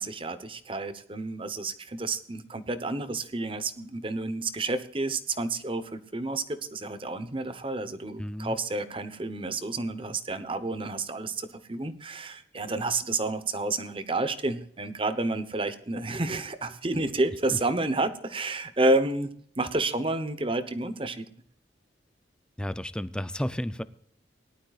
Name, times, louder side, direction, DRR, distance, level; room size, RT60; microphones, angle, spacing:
voice 1, 0.0-19.3 19.6-21.2, right 2 dB, 30° right, 11 dB, 0.9 m, -30 dB
voice 2, 8.2-8.6 17.5-17.6 22.6-23.8, equal, 5° left, 14 dB, 0.5 m, -32 dB
19.0 x 12.0 x 2.4 m, 0.62 s
head